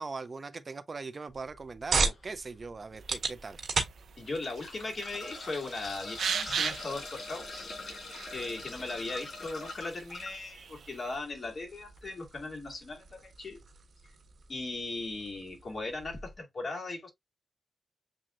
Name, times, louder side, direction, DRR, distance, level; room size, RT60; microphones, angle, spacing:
voice 1, 0.0-3.6, right 4 dB, 40° right, 0.5 m, -40 dB
sound 1, 1.3-16.4, right 4 dB, 65° right, 1.8 m, -39 dB
sound 2, 2.0-2.3 2.9-3.0 4.0-10.4 12.0-12.1 12.4-12.5, left 3 dB, 70° left, 2.5 m, -43 dB
sound 3, 3.0-11.2, right 7 dB, 80° right, 0.6 m, -40 dB
voice 2, 4.2-7.7 8.3-13.6 14.5-17.1, left 3 dB, 40° left, 2.2 m, -38 dB
7.5 x 2.7 x 2.4 m
cardioid pair, 85°, 0 cm